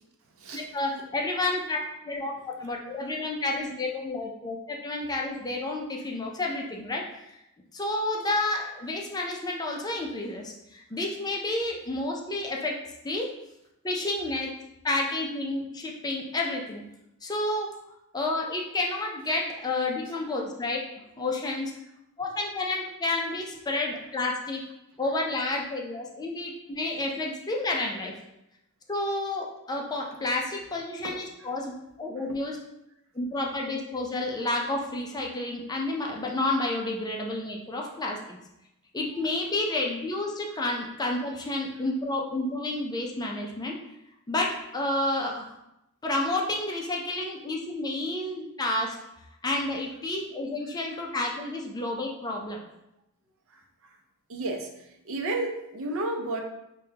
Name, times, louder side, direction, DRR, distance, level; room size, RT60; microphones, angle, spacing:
voice 1, 0.5-7.0 7.3-7.4 7.7-12.8 13.0-13.3 13.8-14.5 14.8-16.8 17.2-17.7 18.1-20.8 21.2-21.7 22.2-24.6 25.0-28.2 28.9-32.6 33.1-38.4 38.9-43.8 44.3-45.5 46.0-49.0 49.4-52.6, left 2 dB, 20° left, 0 dB, 0.5 m, -30 dB
voice 2, 32.2-32.6 39.1-39.3 53.5-53.6 54.3-54.7 55.0-56.4, right 2 dB, 65° right, 3 dB, 0.6 m, -33 dB
5.4 x 2.2 x 2.8 m, 0.86 s
head